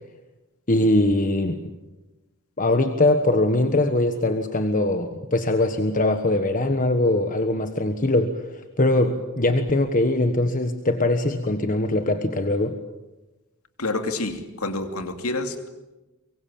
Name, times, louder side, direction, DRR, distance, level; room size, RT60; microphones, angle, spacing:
voice 1, 0.7-1.7 2.6-8.4 8.8-12.8, left 2 dB, 40° left, 7 dB, 1.4 m, -22 dB
voice 2, 13.8-15.7, left 2 dB, 85° left, 6 dB, 2.8 m, -28 dB
24.0 x 23.5 x 8.7 m, 1.1 s
head